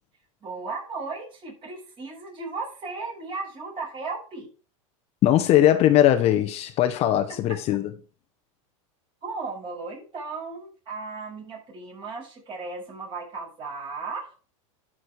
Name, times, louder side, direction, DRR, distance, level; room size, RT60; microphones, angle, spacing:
voice 1, 0.4-4.5 9.2-14.3, right 4 dB, 30° right, 7.3 m, -35 dB
voice 2, 5.2-7.9, left 12 dB, 35° left, 1.0 m, -20 dB
13.0 x 6.4 x 4.7 m
supercardioid pair, 135°, 17 cm